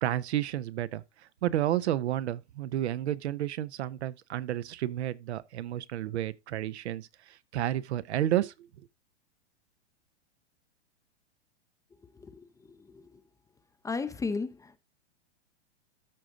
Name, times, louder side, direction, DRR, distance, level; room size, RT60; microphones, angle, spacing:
voice 1, 0.0-1.0 1.4-8.5, right 12 dB, 65° right, 0.8 m, -31 dB
voice 2, 12.2-13.0 13.8-14.8, left 4 dB, 10° left, 0.6 m, -35 dB
13.5 x 5.0 x 3.7 m
hypercardioid pair, 115°, 35 cm